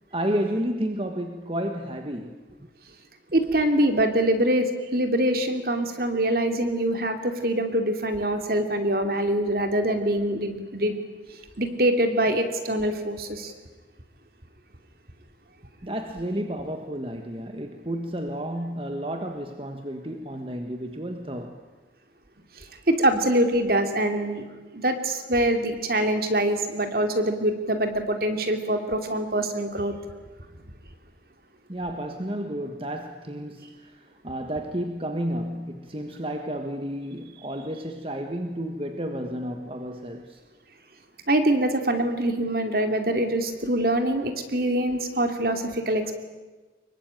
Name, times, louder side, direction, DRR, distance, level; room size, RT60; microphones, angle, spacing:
voice 1, 0.1-2.7 15.8-21.6 31.7-40.4, equal, 30° right, 5 dB, 1.4 m, -31 dB
voice 2, 3.3-11.0 11.6-13.5 22.6-24.5 24.7-29.9 41.3-46.2, right 1 dB, 55° right, 6 dB, 2.9 m, -24 dB
25.0 x 22.5 x 9.1 m, 1.3 s
head